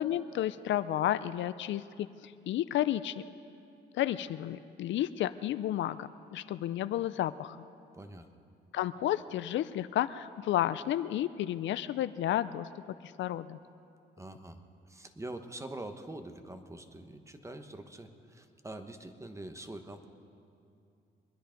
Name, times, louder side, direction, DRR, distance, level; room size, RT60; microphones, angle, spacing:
voice 1, 0.0-3.2 3.9-7.7 8.7-12.7 13.0-13.6, left 12 dB, 70° left, 14 dB, 0.4 m, -32 dB
voice 2, 7.9-8.3 14.2-20.1, right 1 dB, 15° right, 7 dB, 1.1 m, -45 dB
23.5 x 10.0 x 5.2 m, 2.5 s
cardioid pair, 90°, 20 cm